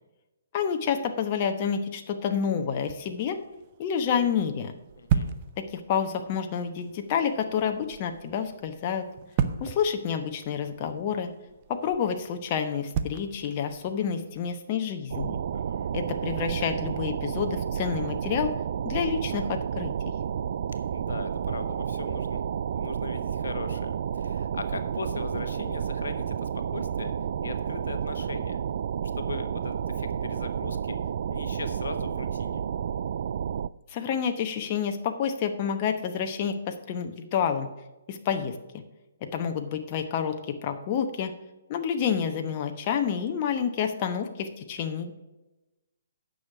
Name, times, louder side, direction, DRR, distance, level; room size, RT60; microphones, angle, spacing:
voice 1, 0.5-3.4 3.8-4.7 5.7-9.0 9.6-11.3 11.7-15.4 15.9-18.5 18.8-19.9 33.9-37.7 38.1-38.6 39.2-41.3 41.7-45.2, left 7 dB, 35° left, 5 dB, 1.0 m, -29 dB
sound 1, 2.8-14.5, right 7 dB, 35° right, 0.7 m, -36 dB
voice 2, 5.0-5.3 15.5-16.0 20.9-22.4 22.7-27.1 27.4-28.6 29.1-31.0 31.3-32.6, left 4 dB, 70° left, 9 dB, 1.1 m, -39 dB
sound 2, 15.1-33.7, right 8 dB, 55° right, 0.3 m, -31 dB
9.6 x 6.5 x 6.0 m, 1.0 s
figure-of-eight pair, 135°, 0 cm